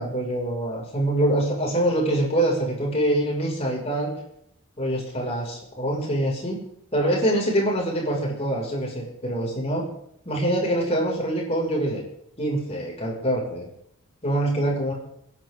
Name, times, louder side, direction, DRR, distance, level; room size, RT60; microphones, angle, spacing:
voice 1, 0.0-4.1 4.8-6.6 6.9-9.9 10.2-12.0 12.4-13.7 14.2-14.9, right 1 dB, 30° left, -2 dB, 6.1 m, -24 dB
28.5 x 11.0 x 3.9 m, 0.74 s
head